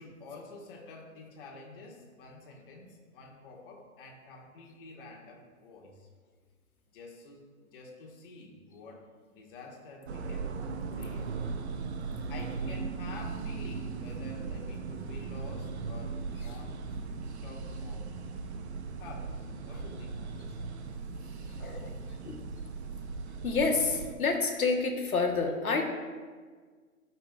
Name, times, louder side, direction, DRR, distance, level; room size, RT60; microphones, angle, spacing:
voice 1, 0.0-6.1 6.9-10.5 11.0-11.3 12.3-16.7 17.4-18.0 19.0-20.6, left 3 dB, 40° left, -1 dB, 1.7 m, -49 dB
sound 1, 10.1-24.1, right 4 dB, 50° right, 0.8 m, -38 dB
voice 2, 11.7-12.1 19.7-19.8 21.5-21.9 22.2-22.4 23.4-25.8, left 4 dB, 75° left, 3 dB, 1.4 m, -29 dB
12.0 x 5.8 x 2.4 m, 1.5 s
figure-of-eight pair, 130°, 43 cm